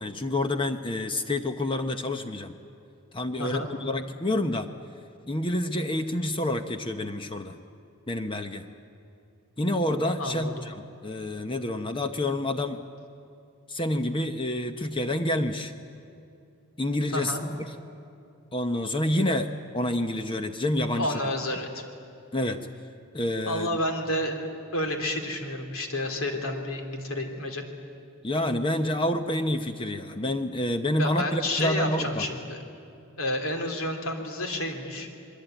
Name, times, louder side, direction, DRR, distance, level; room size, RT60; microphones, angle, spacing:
voice 1, 0.0-2.5 3.1-4.7 5.3-7.6 8.1-8.6 9.6-12.8 13.7-15.7 16.8-17.5 18.5-19.5 19.7-21.2 22.3-22.7 23.1-23.7 28.2-32.2, left 1 dB, 25° left, 7 dB, 0.9 m, -28 dB
voice 2, 10.2-10.5 17.1-17.4 20.9-21.8 23.4-27.6 31.0-32.6 33.2-35.1, left 1 dB, 70° left, 4 dB, 3.1 m, -30 dB
27.5 x 22.0 x 9.1 m, 2.6 s
head